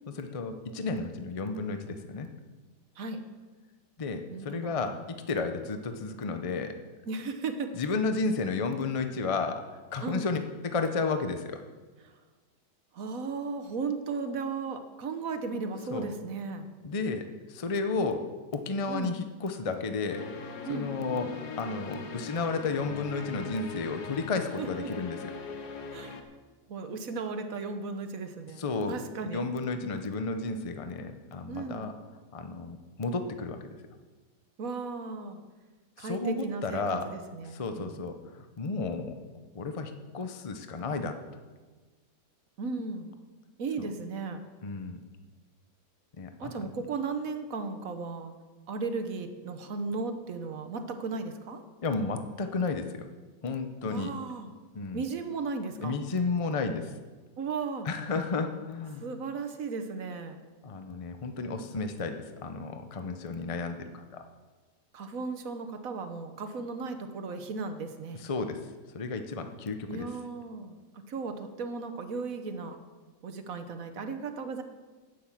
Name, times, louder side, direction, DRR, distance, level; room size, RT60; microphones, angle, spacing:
voice 1, 0.1-2.3 4.0-6.8 7.7-10.4 10.6-11.6 15.9-16.1 16.8-18.3 18.5-21.3 21.6-25.3 28.6-29.0 29.3-31.9 32.3-33.6 36.0-37.1 37.5-39.2 39.5-41.2 43.8-43.9 44.6-45.0 46.2-46.7 51.8-53.0 53.4-54.1 54.7-55.0 55.8-56.9 57.8-59.0 60.6-64.2 68.2-68.6 68.9-70.1, left 4 dB, 50° left, 7 dB, 0.4 m, -32 dB
voice 2, 4.3-5.0 7.1-7.7 10.0-10.3 12.9-16.7 18.9-19.2 20.6-20.9 24.6-24.9 25.9-26.2 26.7-29.5 31.5-31.9 34.6-35.4 36.0-38.0 42.6-43.1 43.6-44.4 46.4-48.3 48.7-51.6 53.8-54.5 54.9-56.0 57.4-57.9 59.0-60.4 64.9-68.3 69.9-70.8 71.1-72.8 73.2-74.6, right 4 dB, 60° right, 8 dB, 1.3 m, -36 dB
sound 1, 20.1-26.2, left 5 dB, 70° left, 1.6 m, -40 dB
10.0 x 9.4 x 7.3 m, 1.3 s
omnidirectional pair, 1.8 m